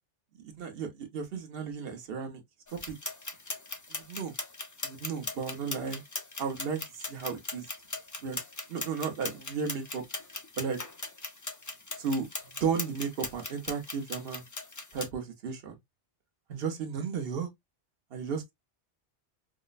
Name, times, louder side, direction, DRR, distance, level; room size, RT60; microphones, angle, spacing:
voice 1, 0.6-2.4 2.7-2.9 3.9-4.3 4.8-6.0 6.4-7.6 8.2-8.4 8.7-10.0 10.6-10.8 12.0-12.3 12.5-14.4 14.9-15.7 16.5-17.5 18.1-18.5, right 6 dB, 60° right, 1.1 m, -34 dB
sound 1, 2.7-15.1, left 2 dB, 25° left, 0.4 m, -40 dB
4.9 x 2.1 x 2.4 m
omnidirectional pair, 1.2 m